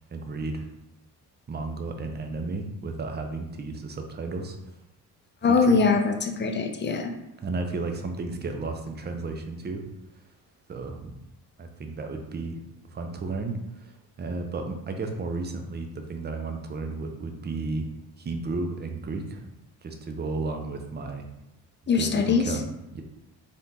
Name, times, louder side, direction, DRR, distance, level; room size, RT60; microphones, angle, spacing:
voice 1, 0.1-0.7 1.5-4.6 5.5-5.8 7.4-9.8 10.7-11.2 11.6-17.9 18.2-19.5 19.8-21.2 22.0-22.6 22.9-23.0, right 3 dB, 20° right, 5 dB, 0.6 m, -33 dB
voice 2, 5.4-7.1 21.9-22.4, left 4 dB, 25° left, 4 dB, 0.5 m, -22 dB
3.4 x 2.5 x 2.8 m, 0.90 s
hypercardioid pair, 45°, 49 cm